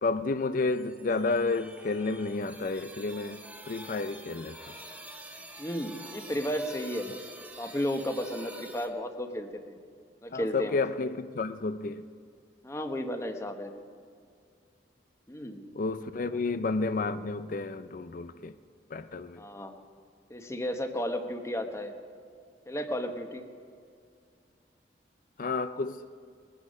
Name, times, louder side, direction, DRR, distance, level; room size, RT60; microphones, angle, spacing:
voice 1, 0.0-3.4 3.7-4.8 10.3-12.0 15.8-18.5 18.9-19.4 25.4-26.1, left 3 dB, 50° left, 0.5 m, -31 dB
sound 1, 0.7-8.9, right 1 dB, 10° right, 1.4 m, -47 dB
voice 2, 5.6-7.2 7.6-9.8 10.2-10.8 12.6-13.7 15.3-15.6 16.3-16.4 19.4-19.8 20.3-21.9 22.7-23.4, equal, 15° left, 1.0 m, -33 dB
21.0 x 9.9 x 5.4 m
head